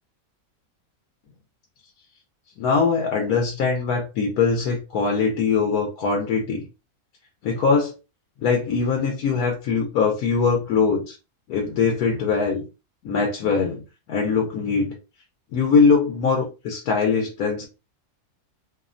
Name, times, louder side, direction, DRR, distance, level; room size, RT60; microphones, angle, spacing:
voice 1, 2.6-6.6 7.4-7.9 8.4-11.2 11.5-12.7 13.0-14.9 15.5-17.7, left 5 dB, 90° left, 0 dB, 1.1 m, -22 dB
2.9 x 2.0 x 2.4 m, 0.30 s
omnidirectional pair, 1.5 m